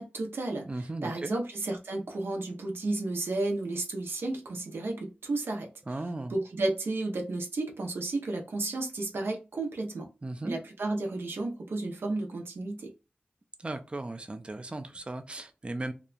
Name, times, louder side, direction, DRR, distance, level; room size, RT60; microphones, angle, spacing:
voice 1, 0.0-0.7 1.0-5.7 6.3-10.1 10.4-12.9, right 2 dB, 85° right, 0.5 m, -32 dB
voice 2, 0.7-1.4 5.9-6.3 10.2-10.6 13.6-15.9, right 2 dB, 30° right, 0.4 m, -36 dB
2.8 x 2.1 x 2.4 m
cardioid pair, 50°, 4 cm